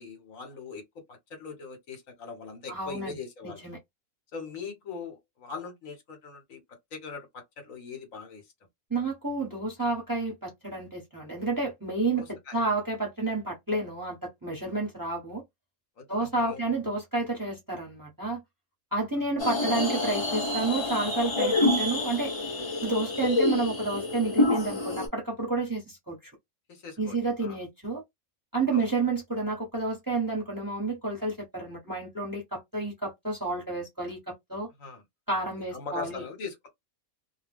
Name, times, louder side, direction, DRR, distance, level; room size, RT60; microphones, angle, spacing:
voice 1, 0.0-3.6 4.3-8.5 12.2-12.6 16.0-16.7 26.7-27.6 28.7-28.9 34.8-35.0 35.6-36.7, left 5 dB, 70° left, 1.2 m, -41 dB
voice 2, 2.7-3.2 3.4-3.8 8.9-15.4 16.1-18.4 18.9-22.3 22.8-26.3 27.0-28.0 28.5-34.7 35.3-36.2, right 3 dB, 15° right, 1.0 m, -30 dB
sound 1, 19.4-25.1, left 2 dB, 25° left, 0.7 m, -27 dB
2.4 x 2.2 x 3.4 m
omnidirectional pair, 1.5 m